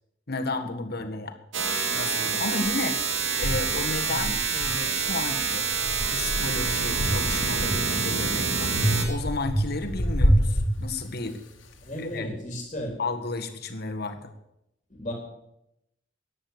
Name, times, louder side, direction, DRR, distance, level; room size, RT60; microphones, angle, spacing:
voice 1, 0.3-3.0 3.4-5.7 6.1-8.7 9.1-11.4 12.0-12.3 13.0-14.3, left 3 dB, 55° left, 6 dB, 1.7 m, -33 dB
sound 1, 1.5-9.1, right 5 dB, 85° right, 2.8 m, -27 dB
sound 2, 2.6-2.7 3.4-5.3 5.7-8.1 8.7-11.4, equal, 85° left, 2.0 m, -27 dB
voice 2, 4.0-4.4 11.9-13.0 14.9-15.1, equal, 30° left, 2 dB, 3.5 m, -35 dB
14.0 x 10.0 x 8.0 m, 0.84 s
head